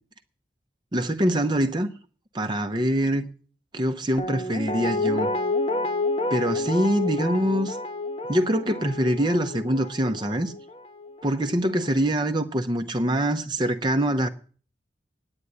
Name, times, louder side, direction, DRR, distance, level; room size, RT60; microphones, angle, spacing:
voice 1, 0.9-1.9 2.3-3.3 3.7-5.3 6.3-7.8 8.3-10.5 11.2-14.3, right 1 dB, 25° right, 0.8 m, -24 dB
Guitar, 4.2-11.2 11.5-11.6, left 2 dB, 30° left, 1.0 m, -29 dB
9.7 x 9.1 x 9.7 m
head